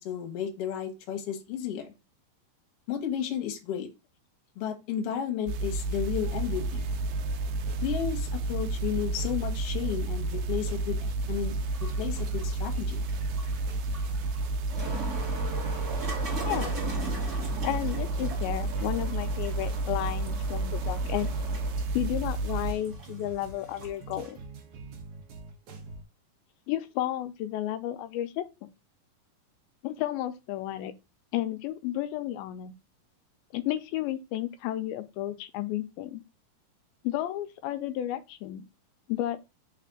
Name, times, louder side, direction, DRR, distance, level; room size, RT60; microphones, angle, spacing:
voice 1, 0.0-1.9 2.9-3.9 4.5-6.8 7.8-11.5 12.0-13.0, left 9 dB, 55° left, 1.7 m, -33 dB
sound 1, 5.5-22.7, right 2 dB, 90° right, 2.5 m, -31 dB
sound 2, 6.2-26.0, right 3 dB, 60° right, 2.3 m, -46 dB
sound 3, 11.2-24.3, right 3 dB, 25° right, 1.7 m, -41 dB
voice 2, 16.4-16.7 17.6-21.3 21.9-24.4 26.7-28.7 29.8-30.9 31.3-32.7 33.5-36.2 37.0-38.7 39.1-39.4, left 13 dB, 85° left, 2.5 m, -32 dB
6.0 x 3.3 x 5.2 m
omnidirectional pair, 4.2 m